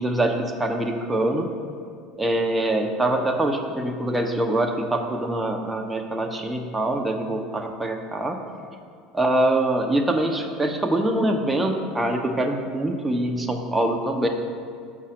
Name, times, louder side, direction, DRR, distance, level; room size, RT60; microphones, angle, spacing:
voice 1, 0.0-1.5 2.2-8.4 9.1-14.3, right 1 dB, 15° right, 3 dB, 0.9 m, -24 dB
6.4 x 5.6 x 5.1 m, 2.3 s
figure-of-eight pair, 70°, 0 cm